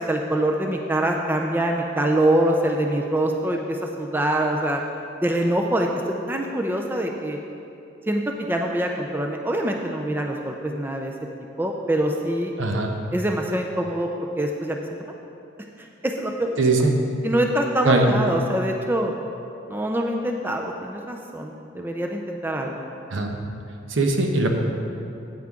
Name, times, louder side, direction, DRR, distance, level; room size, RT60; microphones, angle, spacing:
voice 1, 0.0-4.8 5.2-5.9 6.3-7.4 8.1-11.1 11.6-12.5 13.1-14.1 14.4-14.8 16.0-16.5 17.2-19.1 19.7-22.8, right 1 dB, 10° right, 2 dB, 0.4 m, -24 dB
voice 2, 12.6-12.9 16.6-17.0 17.8-18.1 23.1-23.4 23.9-24.5, right 2 dB, 75° right, 3 dB, 0.9 m, -20 dB
9.4 x 8.8 x 3.7 m, 2.7 s
head